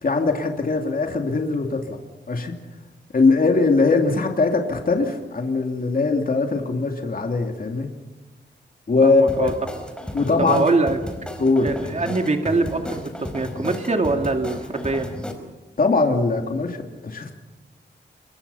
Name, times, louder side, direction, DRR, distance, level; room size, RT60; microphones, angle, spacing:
voice 1, 0.0-2.0 2.3-2.5 3.1-7.9 8.9-9.5 10.1-10.6 11.4-11.7 15.8-17.3, left 3 dB, 50° left, 3 dB, 2.9 m, -21 dB
voice 2, 9.0-9.5 10.4-11.0 11.6-15.1, right 3 dB, 40° right, 4 dB, 2.4 m, -23 dB
sound 1, 9.3-15.3, left 1 dB, 5° left, 4.7 m, -33 dB
28.0 x 24.0 x 5.7 m, 1.2 s
wide cardioid pair, 110°, 19 cm